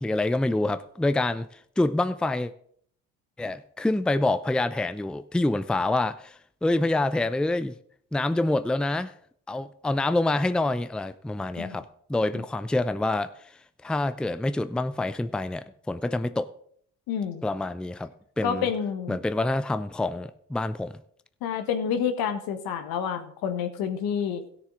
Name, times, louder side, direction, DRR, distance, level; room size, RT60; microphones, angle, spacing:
voice 1, 0.0-1.5 1.8-2.5 3.4-7.7 8.1-9.1 9.5-11.8 12.1-13.3 13.8-16.5 17.4-18.1 18.4-18.7 19.1-21.0, left 2 dB, ahead, 0.5 m, -26 dB
voice 2, 17.1-17.4 18.4-19.2 21.4-24.4, left 7 dB, 75° left, 1.5 m, -28 dB
16.5 x 6.8 x 3.8 m
hypercardioid pair, 60°, 36 cm